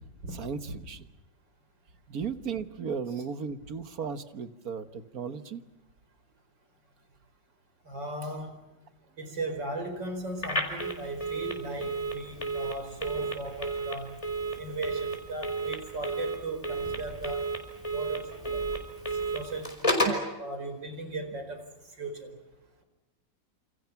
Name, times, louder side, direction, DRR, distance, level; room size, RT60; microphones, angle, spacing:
voice 1, 0.3-1.0 2.1-5.6 20.0-20.2, right 6 dB, 55° right, 10 dB, 1.8 m, -35 dB
voice 2, 7.9-8.6 9.2-14.2 14.6-17.5 17.9-18.7 19.3-21.6 22.0-22.4, right 2 dB, 70° right, 7 dB, 5.4 m, -37 dB
Telephone, 10.4-20.3, right 2 dB, 15° left, 4.8 m, -32 dB
29.0 x 28.5 x 5.9 m, 1.0 s
omnidirectional pair, 2.0 m